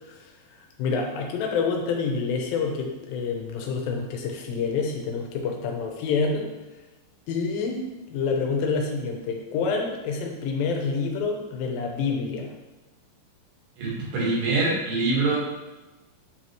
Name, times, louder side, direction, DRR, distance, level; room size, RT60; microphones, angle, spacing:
voice 1, 0.8-6.5 7.3-12.5, left 5 dB, 85° left, 2 dB, 2.5 m, -27 dB
voice 2, 13.8-15.4, right 3 dB, 75° right, -5 dB, 3.2 m, -24 dB
8.0 x 4.2 x 3.1 m, 1.1 s
omnidirectional pair, 4.1 m